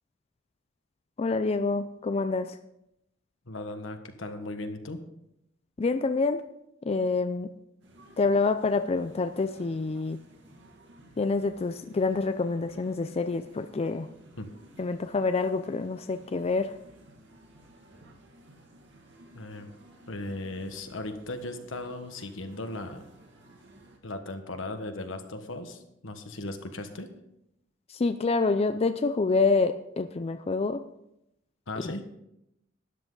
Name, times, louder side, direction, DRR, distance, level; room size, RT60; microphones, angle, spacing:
voice 1, 1.2-2.6 5.8-6.5 6.8-7.5 8.2-10.2 11.2-14.1 14.8-16.7 27.9-30.8 31.8-31.9, left 3 dB, 30° left, 10 dB, 0.4 m, -27 dB
voice 2, 3.5-5.0 14.4-14.5 19.3-19.7 20.1-23.0 24.0-27.1 31.7-32.1, left 2 dB, 75° left, 7 dB, 1.4 m, -37 dB
sound 1, 7.8-24.0, right 1 dB, 65° right, 2.1 m, -54 dB
13.0 x 10.5 x 3.9 m, 0.82 s
head